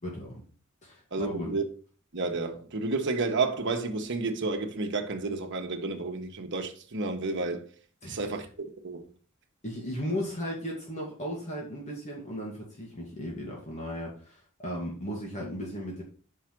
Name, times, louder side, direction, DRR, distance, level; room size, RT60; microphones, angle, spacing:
voice 1, 0.0-0.4 0.8-1.5 8.0-8.3 9.6-16.0, equal, 35° left, 1.9 m, -36 dB
voice 2, 1.1-1.6 2.1-7.7 8.1-9.1, right 3 dB, 60° right, 1.1 m, -31 dB
5.6 x 4.9 x 5.9 m
head